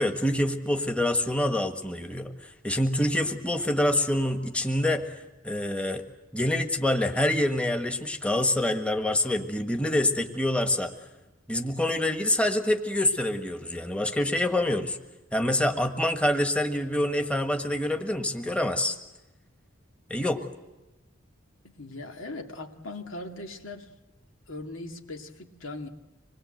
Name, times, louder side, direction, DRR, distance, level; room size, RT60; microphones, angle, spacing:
voice 1, 0.0-5.1 5.4-6.0 6.3-10.9 11.5-15.0 15.3-19.0 20.1-20.4, left 1 dB, 5° left, 5 dB, 1.4 m, -26 dB
voice 2, 21.6-23.9 24.5-25.9, left 2 dB, 85° left, 3 dB, 2.4 m, -39 dB
26.0 x 21.0 x 7.8 m, 1.1 s
head